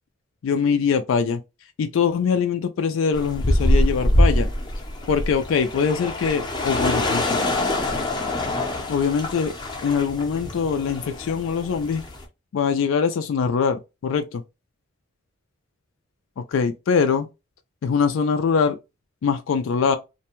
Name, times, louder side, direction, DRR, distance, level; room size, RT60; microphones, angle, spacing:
voice 1, 0.4-1.4 1.8-4.5 5.1-7.5 8.9-9.5 9.8-12.0 12.5-14.4 16.4-17.3 17.8-18.8 19.2-20.0, left 6 dB, 80° left, 0.3 m, -23 dB
sound 1, 3.1-12.2, left 1 dB, 20° left, 0.6 m, -24 dB
2.5 x 2.1 x 2.9 m
head